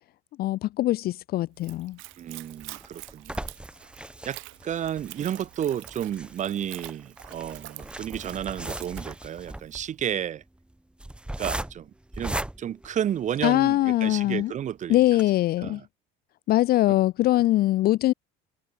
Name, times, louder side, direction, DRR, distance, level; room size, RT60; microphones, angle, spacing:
voice 1, 0.4-2.0 13.4-14.5 14.9-15.8 16.5-18.1, left 15 dB, 50° left, 0.6 m, -22 dB
Splash splatter / Trickle dribble, 1.5-9.9, right 22 dB, 70° right, 7.9 m, -46 dB
voice 2, 2.2-3.5 4.3-10.4 11.4-11.9 12.2-15.0 15.6-15.8 16.9-17.0, right 10 dB, 35° right, 1.1 m, -32 dB
sound 1, 2.3-13.7 14.2-14.3 14.6-14.7 15.1-15.2, right 1 dB, 5° right, 3.6 m, -38 dB
cardioid pair, 140°, 21 cm